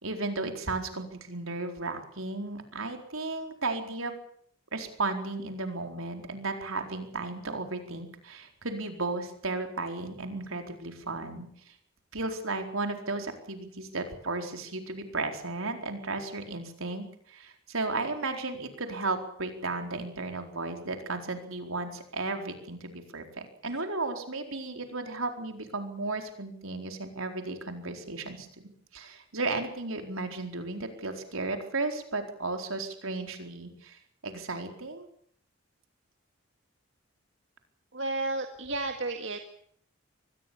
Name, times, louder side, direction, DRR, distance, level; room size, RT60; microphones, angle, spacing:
voice 1, 0.0-4.1 4.7-11.5 12.1-28.5 28.9-35.1, right 3 dB, 75° right, 5 dB, 4.4 m, -34 dB
voice 2, 37.9-39.4, right 2 dB, 60° right, 5 dB, 2.0 m, -32 dB
25.0 x 20.0 x 7.1 m, 0.63 s
head